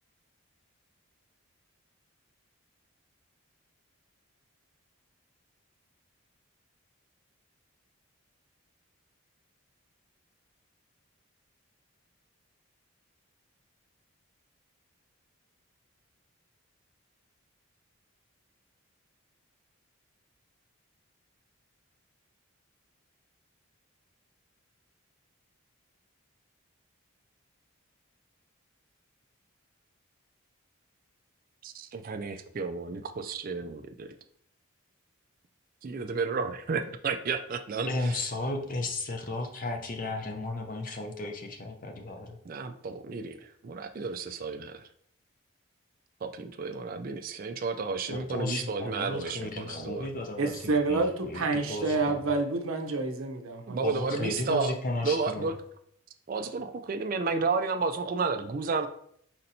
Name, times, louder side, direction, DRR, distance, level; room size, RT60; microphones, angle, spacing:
voice 1, 31.6-34.1 35.8-38.3 42.5-44.8 46.2-50.1 53.7-54.7 55.0-55.6 56.3-58.9, right 4 dB, 40° right, 7 dB, 0.3 m, -32 dB
voice 2, 37.9-42.4 48.1-52.2 53.8-55.5, left 2 dB, 40° left, 4 dB, 0.5 m, -34 dB
voice 3, 50.4-53.8, right 3 dB, 70° right, 4 dB, 0.7 m, -28 dB
4.2 x 4.2 x 2.7 m, 0.66 s
head